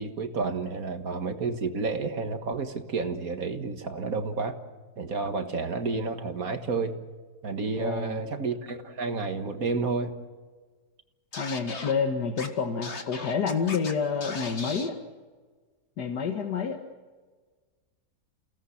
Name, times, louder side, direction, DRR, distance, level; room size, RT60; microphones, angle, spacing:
voice 1, 0.0-4.5 5.0-7.0 7.4-10.1, right 4 dB, 60° right, 7 dB, 2.0 m, -30 dB
voice 2, 7.8-8.2 11.3-15.0 16.0-16.8, left 5 dB, 85° left, 4 dB, 2.0 m, -29 dB
Scratching (performance technique), 11.3-11.9 12.4-12.5 12.8-13.9 14.2-14.9, left 4 dB, 45° left, 1.9 m, -37 dB
29.5 x 18.0 x 7.2 m, 1.4 s
omnidirectional pair, 1.7 m